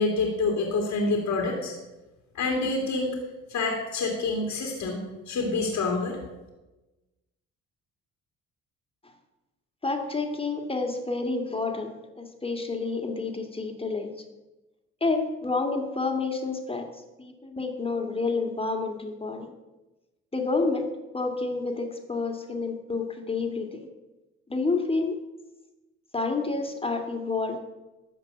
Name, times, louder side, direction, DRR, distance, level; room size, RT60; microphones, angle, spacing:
voice 1, 0.0-1.7 2.3-3.2 3.5-6.2, left 3 dB, 70° left, 1 dB, 2.5 m, -27 dB
voice 2, 9.8-14.1 15.0-16.9 17.2-19.5 20.3-20.8 21.1-23.9 24.5-25.1 26.1-27.6, left 3 dB, 20° left, 4 dB, 2.3 m, -29 dB
13.5 x 5.3 x 9.2 m, 1.1 s
cardioid pair, 90°, 30 cm